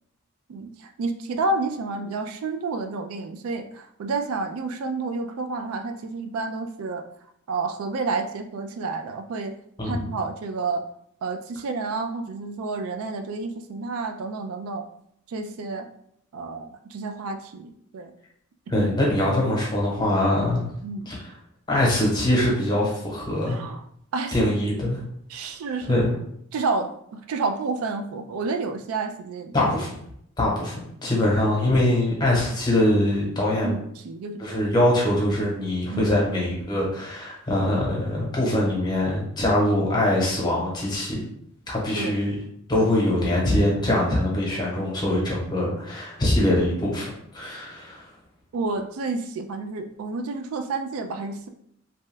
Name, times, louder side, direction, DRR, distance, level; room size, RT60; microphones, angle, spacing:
voice 1, 0.5-7.0 7.5-9.6 9.8-10.8 11.2-14.9 15.3-15.9 16.3-18.1 18.7-18.9 20.8-21.1 23.5-23.8 24.1-24.9 25.3-26.1 26.5-29.7 33.6-34.6 35.9-36.2 41.9-42.2 42.8-42.9 48.5-51.5, right 3 dB, 85° right, 6 dB, 0.4 m, -30 dB
voice 2, 18.7-20.7 21.1-21.2 21.7-23.6 24.3-25.0 25.9-26.1 29.5-29.9 30.4-30.7 31.0-33.8 34.4-41.2 41.7-42.4 42.7-48.0, left 1 dB, 20° left, -4 dB, 0.9 m, -23 dB
2.7 x 2.2 x 3.2 m, 0.71 s
head